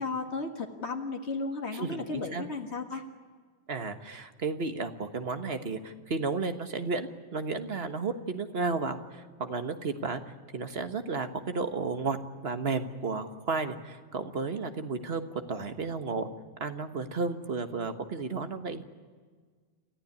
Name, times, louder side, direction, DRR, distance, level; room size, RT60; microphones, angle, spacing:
voice 1, 0.0-3.0, left 3 dB, 85° left, 3 dB, 2.0 m, -34 dB
voice 2, 1.7-2.4 3.7-16.3 16.6-18.8, right 4 dB, 70° right, 8 dB, 1.6 m, -33 dB
27.5 x 15.0 x 9.7 m, 1.6 s
omnidirectional pair, 1.1 m